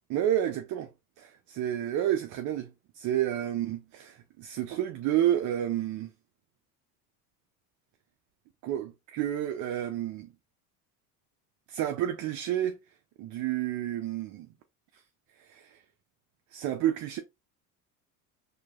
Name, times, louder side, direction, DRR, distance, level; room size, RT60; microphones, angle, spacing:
voice 1, 0.1-0.9 1.2-2.7 3.0-6.1 8.6-10.3 11.7-12.8 13.2-14.5 15.5-15.8 16.5-17.2, right 11 dB, 45° right, 0.6 m, -30 dB
4.4 x 2.8 x 2.4 m
supercardioid pair, 110°, 41 cm